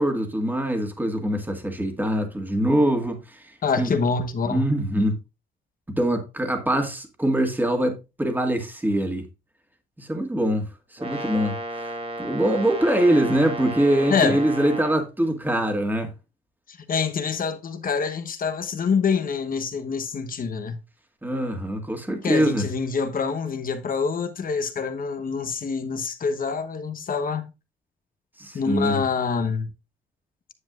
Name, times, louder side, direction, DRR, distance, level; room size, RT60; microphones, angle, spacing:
voice 1, 0.0-3.9 4.5-5.2 5.9-9.3 10.0-11.9 12.2-16.1 21.2-22.7 28.4-29.0, right 1 dB, 10° right, 1.9 m, -23 dB
voice 2, 3.6-4.7 14.1-14.4 16.7-20.8 22.2-27.5 28.5-29.7, left 5 dB, 45° left, 1.1 m, -26 dB
Brass instrument, 11.0-15.0, right 1 dB, 30° right, 1.6 m, -33 dB
9.8 x 7.3 x 2.5 m
cardioid pair, 90°, 20 cm